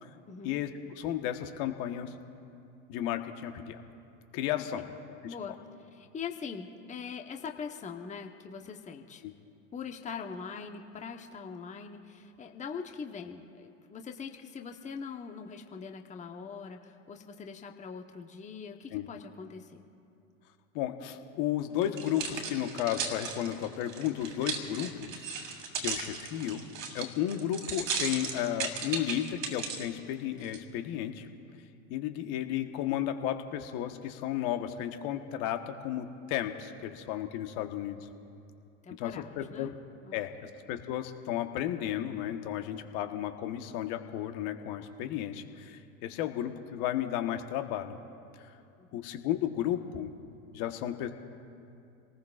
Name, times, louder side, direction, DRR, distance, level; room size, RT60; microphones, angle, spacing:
voice 1, 0.3-0.6 4.5-4.9 5.2-9.2 9.7-19.8 38.8-39.7 40.0-40.2 48.8-48.9, left 6 dB, 20° left, 4 dB, 1.1 m, -42 dB
voice 2, 1.0-2.1 2.9-3.8 4.3-4.8 5.2-5.3 18.9-19.1 20.7-25.2 25.8-26.6 26.9-31.3 31.9-38.0 39.0-39.7 40.1-48.0 48.9-50.1 50.5-51.1, left 11 dB, 50° left, 7 dB, 1.3 m, -33 dB
sound 1, 21.8-29.9 30.4-30.6, right 5 dB, 80° right, 2.7 m, -36 dB
29.0 x 19.5 x 2.5 m, 2.6 s
hypercardioid pair, 90°, 39 cm